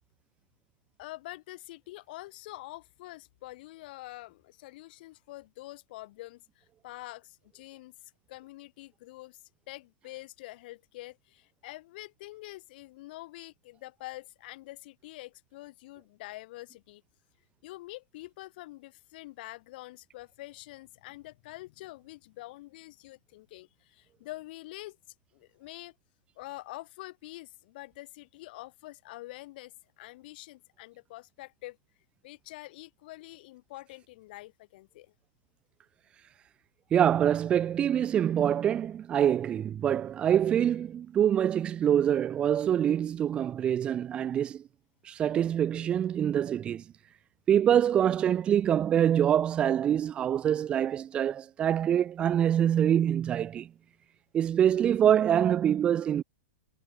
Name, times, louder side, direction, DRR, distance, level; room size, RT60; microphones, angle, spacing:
voice 1, 1.0-7.9 8.3-9.4 9.7-17.0 17.6-25.0 25.3-25.9 26.4-31.8 32.2-35.1, left 19 dB, 50° left, 2.7 m, -46 dB
voice 2, 36.9-44.6 45.1-46.8 47.5-53.7 54.3-56.2, right 9 dB, 15° right, 0.3 m, -25 dB
supercardioid pair, 155°, 7 cm